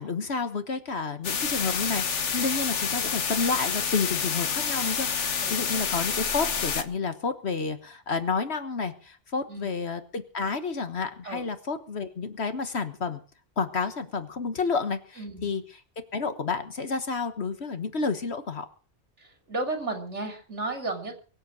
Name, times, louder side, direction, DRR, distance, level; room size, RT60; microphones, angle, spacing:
voice 1, 0.0-2.0 2.3-13.2 13.6-15.6 16.1-18.7, left 4 dB, 65° left, 9 dB, 1.6 m, -30 dB
sound 1, 1.2-6.8, left 6 dB, 90° left, 1.5 m, -28 dB
voice 2, 15.2-15.6 19.2-21.2, right 2 dB, 80° right, 5 dB, 3.3 m, -34 dB
23.0 x 8.1 x 6.3 m, 0.40 s
omnidirectional pair, 1.2 m